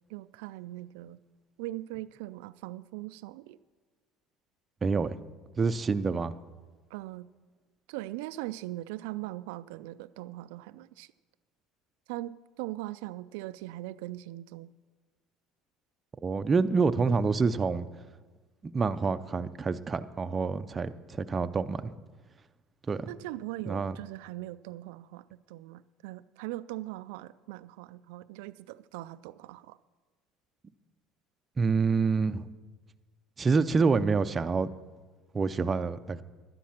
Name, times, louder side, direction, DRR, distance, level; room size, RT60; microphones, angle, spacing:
voice 1, 0.1-1.2 1.6-3.6 6.9-7.3 7.9-11.1 12.1-14.7 23.1-29.8, right 16 dB, 90° right, 12 dB, 0.3 m, -40 dB
voice 2, 5.6-6.3 16.2-17.9 18.6-22.0 22.9-23.1 23.7-24.0 31.6-32.5 33.4-34.7 35.3-36.2, right 4 dB, 25° right, 11 dB, 0.5 m, -27 dB
11.5 x 10.0 x 5.9 m, 1.3 s
supercardioid pair, 110°, 0 cm